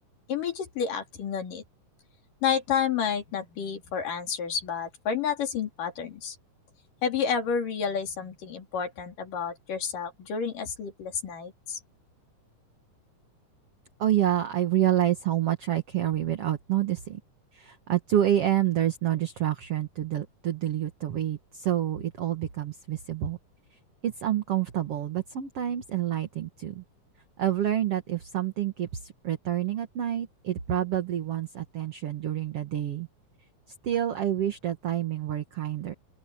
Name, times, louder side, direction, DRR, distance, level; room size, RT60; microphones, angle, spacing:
voice 1, 0.3-1.6 2.4-6.4 7.0-11.8, left 7 dB, 75° left, 4.7 m, -30 dB
voice 2, 14.0-17.2 17.5-23.4 24.0-26.8 27.4-28.9 29.2-33.1 33.8-35.9, right 12 dB, 50° right, 2.3 m, -28 dB
open air
omnidirectional pair, 3.9 m